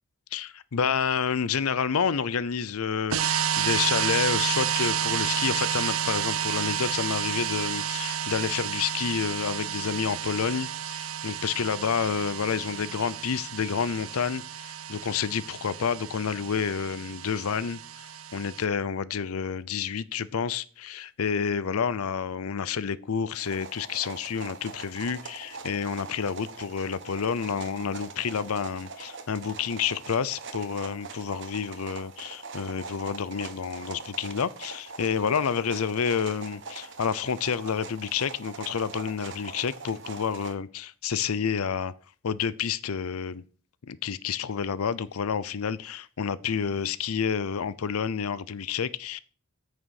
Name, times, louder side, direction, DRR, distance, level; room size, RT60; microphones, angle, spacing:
voice 1, 0.3-41.9 42.2-43.4 43.9-49.2, left 6 dB, 90° left, 0.6 m, -29 dB
sound 1, 3.1-18.6, right 9 dB, 80° right, 0.6 m, -31 dB
sound 2, 23.3-40.5, right 4 dB, 55° right, 1.3 m, -42 dB
9.0 x 6.5 x 6.4 m
head